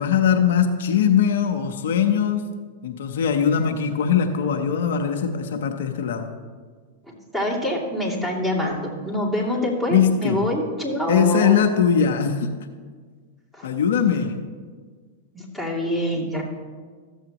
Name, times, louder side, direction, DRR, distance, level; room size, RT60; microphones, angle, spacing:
voice 1, 0.0-2.5 2.8-6.3 9.9-10.5 11.1-12.5 13.6-14.4, left 7 dB, 75° left, 5 dB, 0.8 m, -21 dB
voice 2, 7.3-11.6 13.5-13.7 15.3-16.4, left 1 dB, 5° right, -5 dB, 2.7 m, -25 dB
14.0 x 7.3 x 3.0 m, 1.5 s
hypercardioid pair, 115°, 0 cm